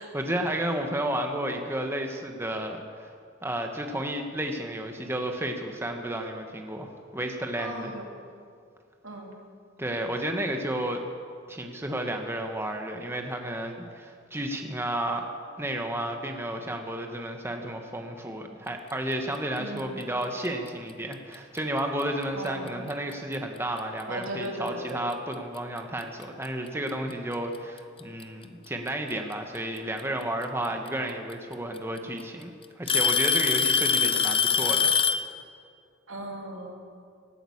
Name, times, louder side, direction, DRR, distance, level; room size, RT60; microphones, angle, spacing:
voice 1, 0.0-3.1 3.4-7.9 9.8-11.0 11.5-15.3 15.6-32.5 32.8-34.9, right 1 dB, 10° right, 3 dB, 1.1 m, -32 dB
voice 2, 7.6-8.1 9.0-9.3 19.6-20.1 22.3-22.8 24.1-25.1 36.1-36.7, right 1 dB, 85° right, 1 dB, 2.6 m, -37 dB
Alarm / Tick-tock, 21.3-21.6 22.5-22.6 23.3-23.4 25.1-25.2 26.4-26.5 27.8-28.2 30.0-30.1 31.3-31.4 31.8-32.2 32.9-35.3, left 6 dB, 30° left, 0.5 m, -23 dB
18.0 x 8.9 x 8.6 m, 2.2 s
head